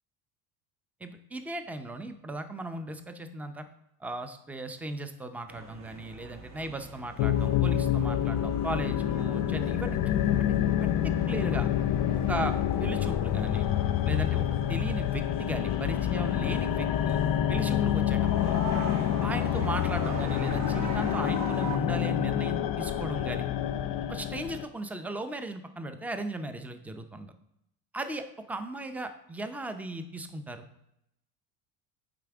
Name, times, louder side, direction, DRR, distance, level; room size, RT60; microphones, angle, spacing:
voice 1, 1.0-3.6 4.0-10.0 10.8-11.7 12.3-13.7 14.1-17.2 17.5-18.6 19.2-23.5 24.1-27.3 27.9-30.6, right 2 dB, 5° right, 9 dB, 0.6 m, -37 dB
sound 1, 5.5-21.8, right 2 dB, 45° right, 1.7 m, -43 dB
sound 2, 7.2-24.6, left 10 dB, 50° left, 0.6 m, -27 dB
8.2 x 5.0 x 3.5 m, 0.80 s
supercardioid pair, 85°, 45 cm